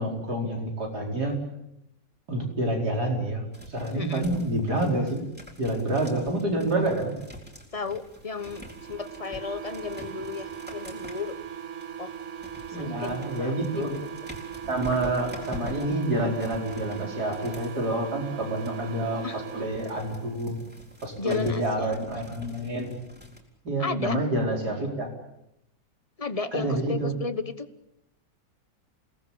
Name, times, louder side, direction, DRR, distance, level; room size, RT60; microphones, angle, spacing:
voice 1, 0.0-1.4 2.3-5.2 5.6-7.2 12.7-13.9 14.7-20.6 21.0-23.0 23.7-25.1 26.5-27.1, right 1 dB, 60° right, 1 dB, 5.1 m, -28 dB
sound 1, 3.5-17.9 18.5-23.4, equal, 5° right, 3.9 m, -46 dB
voice 2, 3.9-4.3 7.7-11.4 12.0-12.1 12.8-14.0 19.2-19.4 21.2-22.1 23.8-24.2 26.2-27.7, left 4 dB, 25° left, 12 dB, 1.0 m, -34 dB
sound 2, 8.3-20.3, right 8 dB, 40° right, 1.7 m, -39 dB
28.5 x 19.0 x 8.8 m, 0.85 s
omnidirectional pair, 2.0 m